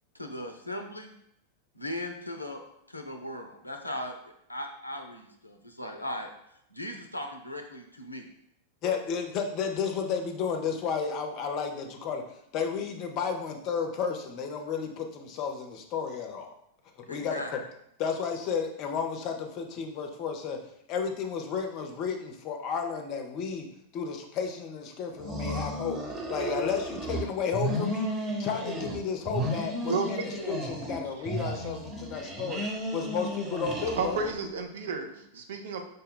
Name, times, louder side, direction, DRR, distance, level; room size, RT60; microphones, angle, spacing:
voice 1, 0.1-1.1 1.7-2.6 2.9-4.2 4.5-6.3 6.7-8.3 17.1-17.5 35.0-35.2, left 1 dB, 85° left, 4 dB, 0.5 m, -38 dB
voice 2, 8.8-16.5 17.1-17.6 18.0-20.6 20.9-23.7 23.9-26.0 26.3-32.6 32.9-34.2, left 6 dB, 40° left, 5 dB, 0.6 m, -32 dB
sound 1, 25.2-27.2 27.5-29.0 29.2-31.0 31.2-34.4, equal, 25° right, 1.0 m, -33 dB
voice 3, 34.0-35.1 35.3-35.9, right 4 dB, 60° right, 4 dB, 0.5 m, -31 dB
5.2 x 2.2 x 3.7 m, 0.76 s
figure-of-eight pair, 90°, 0 cm